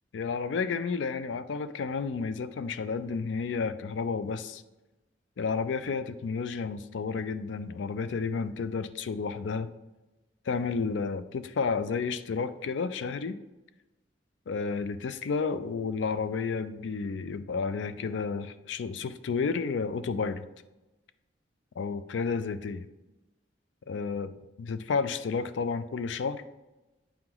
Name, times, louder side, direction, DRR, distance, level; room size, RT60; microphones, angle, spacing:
voice 1, 0.1-4.6 5.4-9.7 10.5-13.4 14.5-20.4 21.8-22.9 23.9-24.3 24.6-26.4, left 5 dB, 85° left, 12 dB, 0.4 m, -31 dB
8.5 x 2.9 x 3.8 m, 1.1 s
head